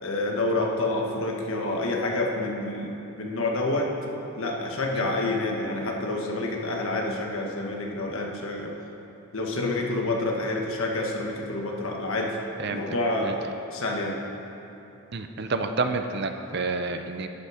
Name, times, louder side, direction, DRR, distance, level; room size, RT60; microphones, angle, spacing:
voice 1, 0.0-2.9 3.2-3.9 4.3-8.7 9.3-12.4 12.7-14.2, left 2 dB, 65° left, 0 dB, 1.4 m, -28 dB
voice 2, 15.1-17.3, right 3 dB, 50° right, 7 dB, 0.6 m, -29 dB
11.5 x 9.6 x 5.0 m, 3.0 s
head